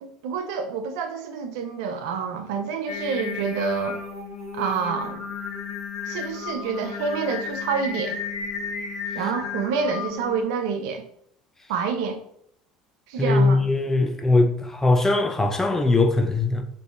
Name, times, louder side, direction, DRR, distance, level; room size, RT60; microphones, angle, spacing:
voice 1, 0.0-4.0 4.5-5.3 6.1-8.2 9.1-11.0 11.7-12.2 13.1-13.6, right 5 dB, 70° right, 0.3 m, -28 dB
Singing, 2.9-10.4, left 5 dB, 90° left, 0.5 m, -33 dB
voice 2, 13.2-16.6, left 2 dB, 15° left, 0.4 m, -20 dB
2.5 x 2.3 x 2.4 m
hypercardioid pair, 75°, 3 cm